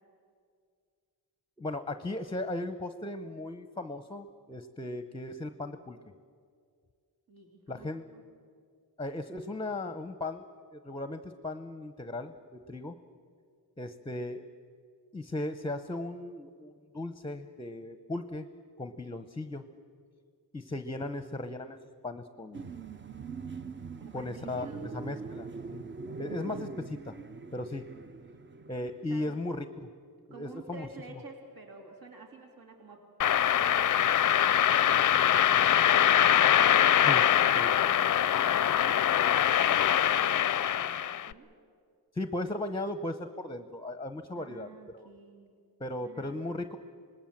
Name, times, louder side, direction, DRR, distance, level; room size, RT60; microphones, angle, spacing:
voice 1, 1.6-6.0 7.7-8.1 9.0-10.5 10.7-13.0 13.8-14.4 15.1-18.5 18.8-19.7 20.5-21.8 22.0-22.7 24.1-24.7 24.9-25.5 25.7-25.9 26.2-27.2 27.5-27.9 28.7-29.9 30.3-31.2 37.0-37.3 37.6-37.8 42.1-44.7 44.9-45.1 45.8-46.8, left 2 dB, 15° left, 10 dB, 0.7 m, -37 dB
voice 2, 7.3-8.2 24.0-25.5 29.1-29.3 30.3-33.0 33.3-39.4 40.2-41.5 44.3-45.5 46.0-46.4, right 3 dB, 65° right, 2 dB, 2.9 m, -50 dB
sound 1, 22.5-29.2, right 4 dB, 30° right, 0.6 m, -42 dB
sound 2, 33.2-41.3, left 10 dB, 55° left, 0.5 m, -23 dB
26.0 x 20.0 x 7.3 m, 2.2 s
wide cardioid pair, 130°, 38 cm